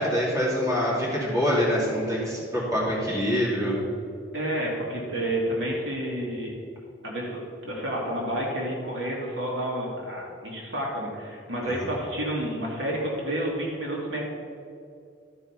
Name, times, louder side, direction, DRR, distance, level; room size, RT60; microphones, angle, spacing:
voice 1, 0.0-3.8 11.6-11.9, equal, 15° right, -6 dB, 2.6 m, -25 dB
voice 2, 4.3-6.6 7.0-14.2, right 1 dB, 70° right, -3 dB, 2.2 m, -30 dB
12.5 x 4.7 x 5.8 m, 2.4 s
head